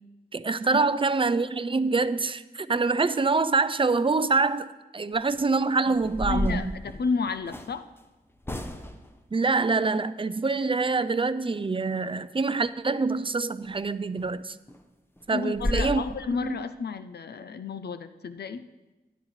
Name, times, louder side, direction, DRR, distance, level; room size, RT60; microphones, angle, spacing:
voice 1, 0.3-6.8 9.3-14.6 15.3-16.0 16.4-16.6, right 4 dB, 30° right, 14 dB, 0.4 m, -25 dB
sound 1, 5.1-5.4 6.0-7.7 8.4-9.1 13.6-13.8 14.2-14.3 14.7-14.8 15.2-15.3 15.6-15.9, left 1 dB, 15° left, 0.7 m, -31 dB
voice 2, 6.3-7.9 15.3-18.7, left 4 dB, 85° left, 11 dB, 0.4 m, -31 dB
13.5 x 10.5 x 3.2 m, 1.1 s
wide cardioid pair, 90°, 17 cm